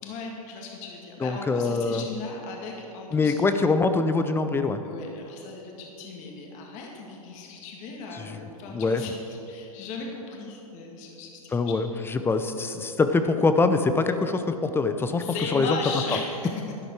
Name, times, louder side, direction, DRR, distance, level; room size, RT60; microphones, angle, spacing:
voice 1, 0.0-3.6 4.8-11.7 15.2-16.5, left 4 dB, 40° left, 0 dB, 2.2 m, -37 dB
voice 2, 1.2-2.0 3.1-4.8 8.1-8.4 8.7-9.0 11.5-15.2 15.5-15.8, left 3 dB, 10° left, 9 dB, 0.6 m, -24 dB
12.0 x 11.5 x 4.8 m, 2.8 s
figure-of-eight pair, 100°, 19 cm